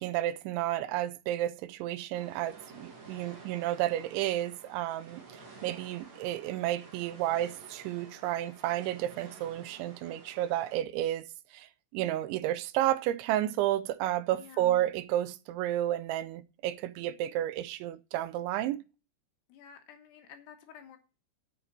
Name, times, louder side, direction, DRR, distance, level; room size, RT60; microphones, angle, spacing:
voice 1, 0.0-5.2 5.6-11.3 11.5-11.7 11.9-18.8, right 13 dB, 85° right, 2.9 m, -31 dB
sound 1, 2.1-10.8, right 3 dB, 45° right, 2.8 m, -52 dB
voice 2, 14.3-14.9 19.5-21.0, left 8 dB, 70° left, 3.1 m, -51 dB
7.9 x 6.5 x 7.2 m
omnidirectional pair, 5.3 m